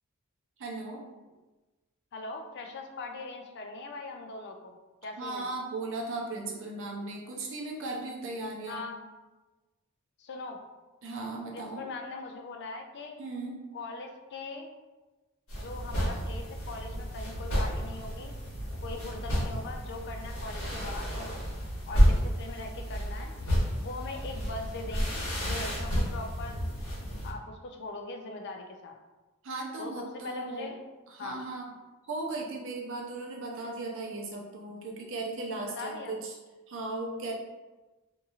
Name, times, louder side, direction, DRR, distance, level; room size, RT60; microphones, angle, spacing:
voice 1, 0.6-1.0 5.2-8.8 11.0-11.9 13.2-13.6 29.4-30.7 31.1-31.7 32.1-36.3 36.7-37.4, right 2 dB, 60° right, -1 dB, 0.5 m, -37 dB
voice 2, 2.1-5.5 8.7-9.0 10.2-10.6 11.5-13.2 13.7-14.8 15.6-18.3 18.8-21.4 21.9-23.3 23.8-26.7 27.2-29.0 29.8-30.8 31.2-31.4 35.8-36.1, left 3 dB, 50° left, 4 dB, 0.3 m, -41 dB
sound 1, 15.5-27.3, equal, 70° left, 1.2 m, -30 dB
2.8 x 2.7 x 2.3 m, 1.2 s
head